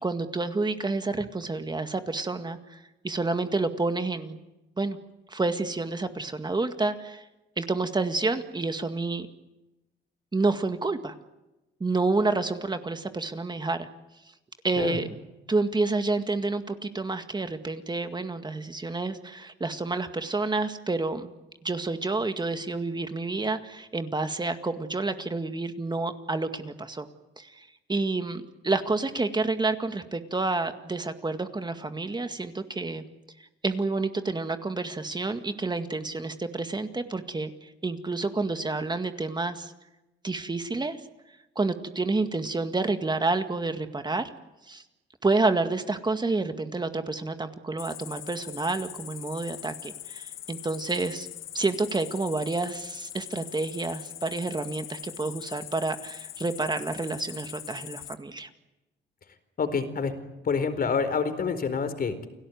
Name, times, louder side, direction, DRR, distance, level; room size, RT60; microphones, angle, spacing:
voice 1, 0.0-2.8 3.0-4.4 4.8-5.0 5.3-7.3 7.6-9.3 10.3-11.2 11.8-13.9 14.6-15.1 15.5-21.3 21.6-27.1 27.4-33.0 33.6-39.7 40.2-41.0 41.6-44.3 44.7-44.8 45.2-51.3 51.5-58.5, right 3 dB, 20° right, 8 dB, 2.0 m, -29 dB
Cricket, 47.8-58.1, left 12 dB, 85° left, 1.9 m, -42 dB
voice 2, 59.6-60.1 60.4-62.3, left 5 dB, 50° left, 11 dB, 4.4 m, -27 dB
29.5 x 18.0 x 9.5 m, 0.99 s
cardioid pair, 90°, 20 cm